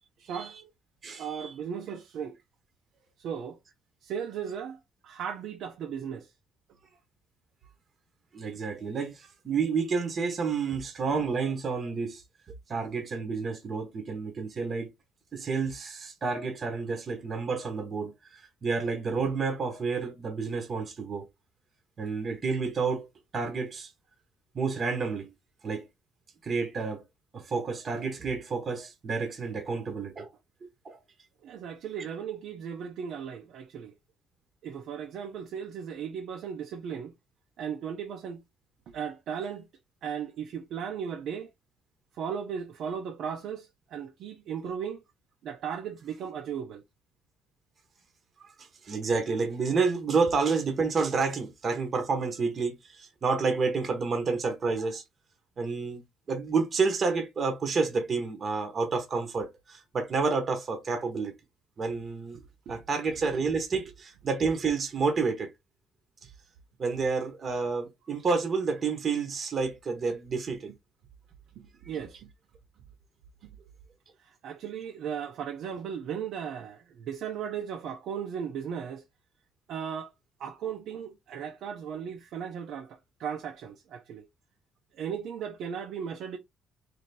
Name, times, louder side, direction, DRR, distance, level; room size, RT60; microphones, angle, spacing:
voice 1, 0.2-0.6 1.2-2.4 3.2-3.6 4.0-4.8 5.0-6.3 31.4-33.9 34.6-37.1 37.6-38.4 38.9-39.7 40.0-41.5 42.1-45.0 45.4-46.8 62.7-62.8 71.6-72.3 73.4-73.5 74.2-79.0 79.7-80.1 80.4-84.3 84.9-86.4, right 7 dB, 60° right, 0.7 m, -36 dB
voice 2, 1.0-1.5 8.3-12.2 12.7-14.9 15.3-21.3 22.0-23.1 23.3-23.9 24.5-25.3 25.6-25.9 26.4-27.0 27.3-30.3 30.8-31.0 48.4-55.0 55.6-56.0 56.3-61.3 61.8-62.4 62.7-65.5 66.8-70.7, right 4 dB, 30° right, 0.9 m, -29 dB
3.3 x 2.8 x 4.1 m
cardioid pair, 160°, 0 cm